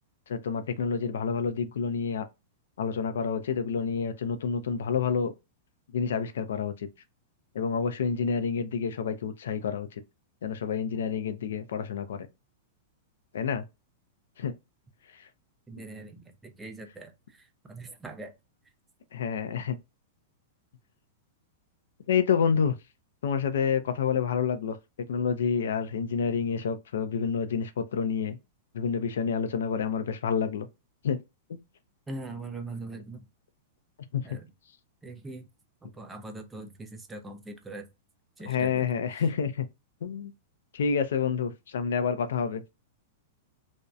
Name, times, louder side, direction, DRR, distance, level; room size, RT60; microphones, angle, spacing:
voice 1, 0.3-2.3 2.8-5.3 5.9-6.9 7.5-10.0 10.4-12.3 13.3-13.6 14.4-14.5 15.1-15.3 19.1-19.8 22.1-22.8 23.2-24.8 25.1-28.4 28.7-30.7 31.0-31.2 31.5-31.6 34.1-34.2 38.5-39.7 40.0-40.3 40.7-42.6, left 6 dB, 85° left, 0.4 m, -28 dB
voice 2, 15.7-18.3 32.1-33.3 34.2-34.5 35.0-35.5 35.8-37.9 38.4-38.9 39.1-39.3, right 2 dB, 5° right, 0.4 m, -42 dB
2.6 x 2.0 x 2.3 m
supercardioid pair, 170°, 0 cm